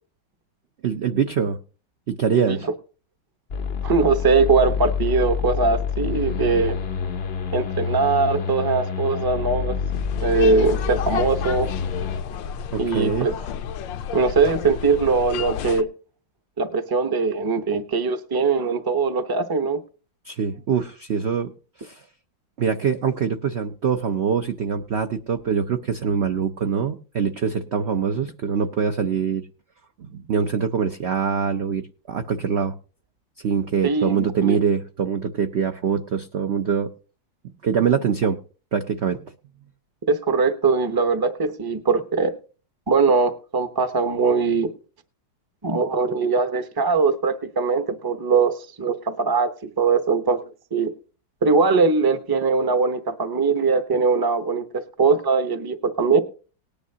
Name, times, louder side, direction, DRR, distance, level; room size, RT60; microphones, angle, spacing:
voice 1, 0.8-1.6 2.1-2.7 12.7-13.3 20.2-21.5 21.8-22.0 22.6-29.4 30.0-32.8 33.4-36.9 37.4-38.4 38.7-39.2, right 7 dB, 70° right, 0.6 m, -24 dB
sound 1, 3.5-12.2, left 6 dB, 55° left, 0.6 m, -27 dB
voice 2, 3.8-6.8 7.5-9.8 10.2-11.7 12.8-13.3 14.1-15.9 16.6-19.8 33.8-34.6 40.1-42.3 42.9-44.7 45.6-50.4 50.7-50.9 51.4-54.6 55.0-56.2, right 4 dB, 20° right, 0.5 m, -21 dB
sound 2, 9.9-15.8, left 8 dB, 75° left, 1.4 m, -32 dB
19.0 x 10.0 x 2.8 m
omnidirectional pair, 2.1 m